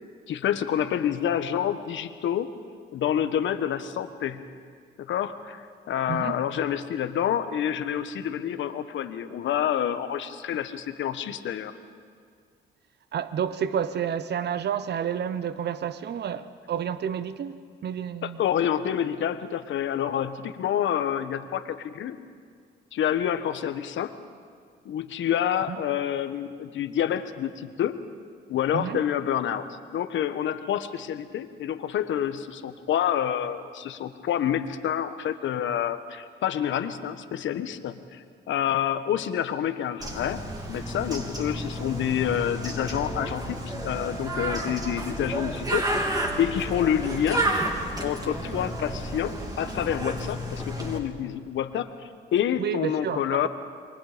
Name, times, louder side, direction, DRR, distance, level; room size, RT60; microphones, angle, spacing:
voice 1, 0.3-2.5 2.9-4.4 5.0-11.7 18.2-22.2 22.9-24.1 24.8-27.9 28.5-29.6 29.9-40.4 40.7-47.4 48.0-53.5, left 9 dB, 70° left, 1.3 m, -28 dB
voice 2, 13.1-18.4 25.7-25.8 28.7-29.0 44.7-44.8 52.6-53.5, right 8 dB, 60° right, 1.0 m, -30 dB
Bird, 40.0-51.0, right 1 dB, 20° right, 3.7 m, -31 dB
28.5 x 23.0 x 5.1 m
cardioid pair, 90°, 20 cm